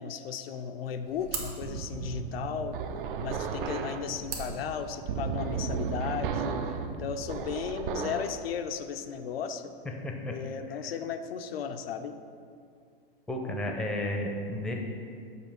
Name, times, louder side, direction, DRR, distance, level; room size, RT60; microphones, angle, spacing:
voice 1, 0.0-2.8 3.2-6.7 7.0-9.7 10.3-12.2, left 7 dB, 90° left, 7 dB, 0.5 m, -35 dB
sound 1, 0.5-5.5, right 5 dB, 85° right, 1.1 m, -43 dB
sound 2, 1.6-8.4, right 6 dB, 65° right, 0.5 m, -34 dB
voice 2, 10.0-10.3 10.7-10.8 13.3-14.7, left 1 dB, 5° left, 1 dB, 0.5 m, -32 dB
6.7 x 2.8 x 5.7 m, 2.3 s
hypercardioid pair, 125°, 29 cm